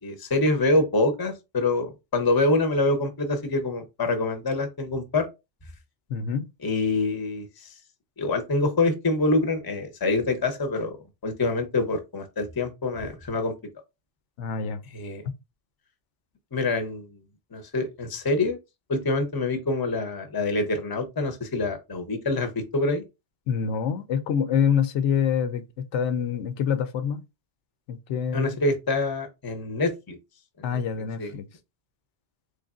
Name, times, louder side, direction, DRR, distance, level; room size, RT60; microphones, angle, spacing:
voice 1, 0.0-5.3 6.6-7.7 8.2-11.0 11.2-13.5 14.9-15.2 16.5-17.2 17.5-18.6 18.9-23.0 28.3-30.2 30.6-30.8 31.2-31.3, left 2 dB, 25° left, 0.6 m, -26 dB
voice 2, 6.1-6.5 14.4-14.8 23.5-27.2 27.9-28.5 30.6-31.5, left 7 dB, 85° left, 0.9 m, -26 dB
4.0 x 3.2 x 2.4 m
omnidirectional pair, 1.2 m